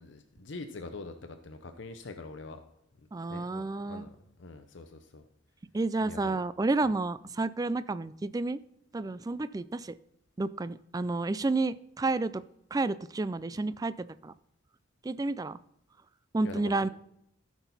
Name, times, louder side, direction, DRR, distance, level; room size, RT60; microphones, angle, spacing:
voice 1, 0.0-2.6 3.3-5.2 6.0-6.4 6.8-6.9 16.4-16.9, left 3 dB, 65° left, 7 dB, 0.7 m, -44 dB
voice 2, 3.1-4.1 5.7-8.6 8.9-9.9 10.4-12.4 12.7-14.3 15.0-15.6 16.3-16.9, right 3 dB, 20° right, 15 dB, 0.3 m, -30 dB
14.0 x 6.1 x 4.1 m, 0.76 s
head